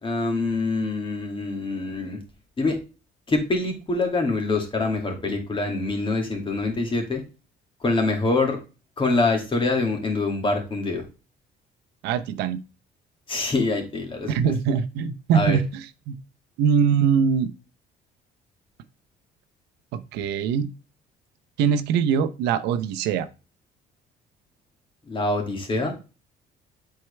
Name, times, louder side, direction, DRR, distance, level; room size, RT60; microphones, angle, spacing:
voice 1, 0.0-2.2 2.6-2.8 3.3-7.2 7.8-8.6 9.0-11.0 13.3-14.5 15.3-15.6 25.1-25.9, left 3 dB, 30° left, 3 dB, 2.2 m, -25 dB
voice 2, 12.0-12.6 14.3-15.6 16.1-16.2 16.6-17.5 19.9-20.7 21.6-23.3, right 7 dB, 90° right, 10 dB, 0.7 m, -22 dB
7.8 x 4.5 x 3.3 m, 0.32 s
cardioid pair, 110°, 17 cm